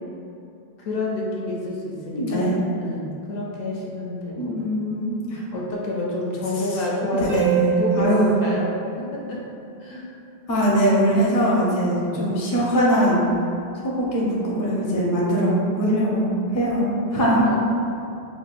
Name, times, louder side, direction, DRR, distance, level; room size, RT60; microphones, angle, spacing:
voice 1, 0.8-2.5 2.8-4.4 5.5-7.3 7.8-8.7 9.0-9.4 9.8-10.1 12.0-12.2 17.4-17.6, left 2 dB, 70° left, -3 dB, 0.7 m, -28 dB
voice 2, 2.1-2.5 4.4-5.4 7.1-8.3 10.5-13.2 13.8-17.6, equal, 25° left, -5 dB, 0.4 m, -21 dB
Harp, 7.3-9.8 13.3-13.4, right 6 dB, 70° right, 1.0 m, -27 dB
4.8 x 2.1 x 2.4 m, 2.6 s
omnidirectional pair, 1.0 m